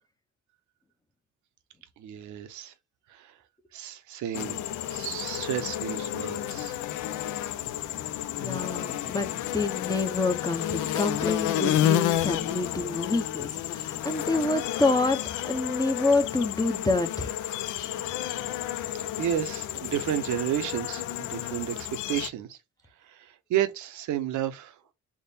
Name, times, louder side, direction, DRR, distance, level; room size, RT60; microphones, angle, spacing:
voice 1, 2.0-2.7 3.1-3.3 3.7-6.7 18.9-22.6 23.1-24.8, right 11 dB, 75° right, 0.7 m, -32 dB
sound 1, 4.3-22.3, left 12 dB, 85° left, 0.5 m, -31 dB
voice 2, 8.3-15.2 15.4-17.3, left 3 dB, 15° left, 0.6 m, -27 dB
3.6 x 2.1 x 3.9 m
cardioid pair, 90°, 30 cm